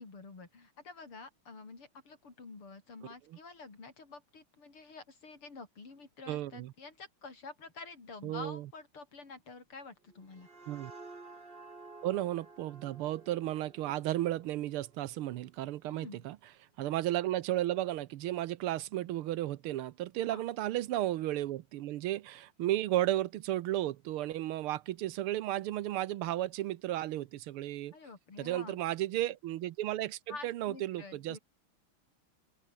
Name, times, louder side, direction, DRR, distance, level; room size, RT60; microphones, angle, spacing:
voice 1, 0.0-10.5 15.9-16.3 20.3-20.4 27.9-28.8 30.3-31.4, left 4 dB, 80° left, 5.6 m, -48 dB
voice 2, 6.3-6.7 8.2-8.6 10.7-10.9 12.0-16.4 16.8-27.9 28.4-31.4, right 14 dB, 85° right, 1.7 m, -34 dB
sound 1, 10.1-15.5, right 3 dB, 25° right, 2.5 m, -53 dB
open air
omnidirectional pair, 2.4 m